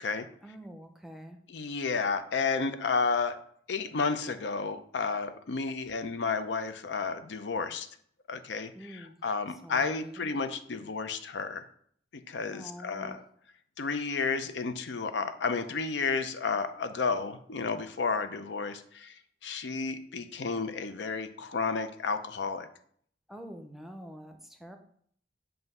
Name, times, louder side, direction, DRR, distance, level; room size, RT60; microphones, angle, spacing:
voice 1, 0.4-1.4 8.7-9.2 9.6-10.3 12.5-13.2 23.3-24.8, equal, ahead, 4 dB, 0.6 m, -46 dB
voice 2, 1.5-3.4 3.7-7.9 8.3-11.7 12.3-13.2 13.8-19.1 19.4-22.7, left 4 dB, 80° left, 10 dB, 0.5 m, -32 dB
7.8 x 2.6 x 5.4 m, 0.62 s
head